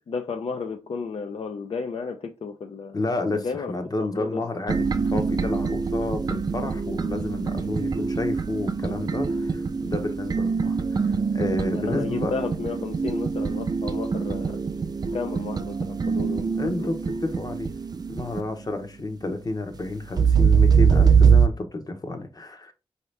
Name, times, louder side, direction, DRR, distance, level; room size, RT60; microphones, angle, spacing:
voice 1, 0.1-3.0 3.3-4.5 11.7-14.6 15.1-17.0, left 5 dB, 55° left, 0.5 m, -33 dB
voice 2, 2.9-4.8 5.0-10.8 11.0-12.3 16.6-16.9 17.2-17.7 18.1-22.7, left 2 dB, 35° left, 0.9 m, -30 dB
sound 1, 4.7-18.4 20.2-21.5, right 6 dB, 35° right, 0.4 m, -23 dB
4.6 x 2.8 x 3.2 m
wide cardioid pair, 80°, 11 cm